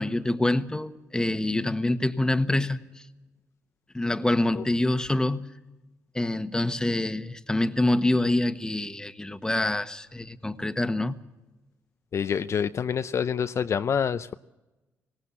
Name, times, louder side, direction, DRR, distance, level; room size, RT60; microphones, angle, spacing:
voice 1, 0.0-3.0 3.9-5.5 6.1-11.2, left 2 dB, 10° left, 1.3 m, -26 dB
voice 2, 12.1-14.3, left 7 dB, 50° left, 0.6 m, -27 dB
19.5 x 17.5 x 8.3 m
supercardioid pair, 65°, 6 cm